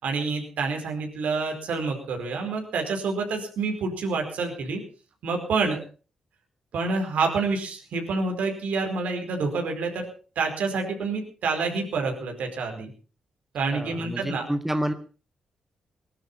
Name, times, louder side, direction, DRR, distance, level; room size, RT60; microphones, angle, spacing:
voice 1, 0.0-4.8 5.2-5.8 6.7-10.1 10.3-12.9 13.5-14.4, right 4 dB, 70° right, 3 dB, 4.8 m, -28 dB
voice 2, 13.7-14.9, equal, 10° right, 9 dB, 1.8 m, -29 dB
19.5 x 11.5 x 5.8 m, 0.39 s
hypercardioid pair, 40°, 3 cm